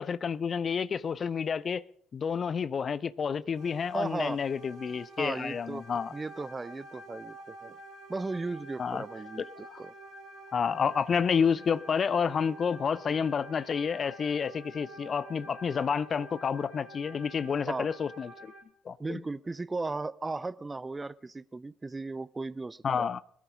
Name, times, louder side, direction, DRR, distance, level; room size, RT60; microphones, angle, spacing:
voice 1, 0.0-1.8 2.1-6.1 8.8-9.0 9.7-9.8 10.5-18.5 18.8-19.2 22.8-23.2, left 6 dB, 40° left, 0.6 m, -29 dB
sound 1, 3.5-18.6, right 2 dB, 50° right, 4.5 m, -49 dB
voice 2, 3.9-4.4 5.2-7.8 8.1-9.9 17.7-17.9 19.0-23.1, right 3 dB, 20° right, 0.6 m, -36 dB
20.5 x 13.5 x 3.8 m
figure-of-eight pair, 50°, 0 cm